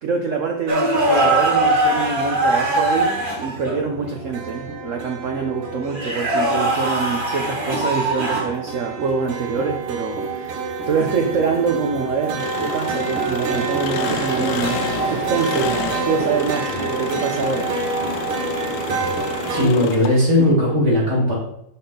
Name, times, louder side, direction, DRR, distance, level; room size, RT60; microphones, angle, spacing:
voice 1, 0.0-17.7 19.7-19.9, right 5 dB, 70° right, 3 dB, 0.7 m, -25 dB
sound 1, 0.7-3.8 5.9-8.5 10.9-11.1 13.4-13.7 16.6-16.8 18.9-19.2, right 1 dB, 30° right, 1.3 m, -21 dB
sound 2, 0.9-19.7, right 5 dB, 90° right, 1.9 m, -28 dB
Engine, 12.4-20.5, left 9 dB, 75° left, 1.4 m, -30 dB
voice 2, 19.5-21.3, left 1 dB, 50° right, -7 dB, 3.7 m, -17 dB
11.0 x 3.8 x 3.8 m, 0.77 s
omnidirectional pair, 2.3 m